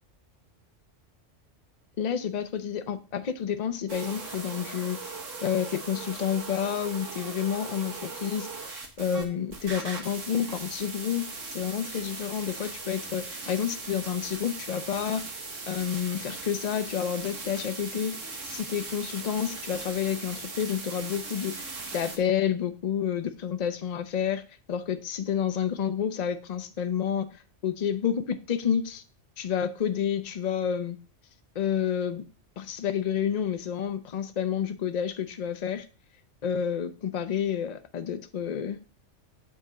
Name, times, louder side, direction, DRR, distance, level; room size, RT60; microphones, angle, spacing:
voice 1, 2.0-5.0 5.4-15.2 15.7-18.2 18.5-24.4 24.7-27.3 27.6-29.0 29.4-31.0 31.5-32.3 32.6-35.9 36.4-38.8, left 8 dB, 45° left, 9 dB, 0.6 m, -29 dB
sound 1, 3.9-9.2 9.5-22.2, right 3 dB, 80° right, 1.7 m, -39 dB
7.8 x 4.2 x 4.8 m, 0.38 s
omnidirectional pair, 1.3 m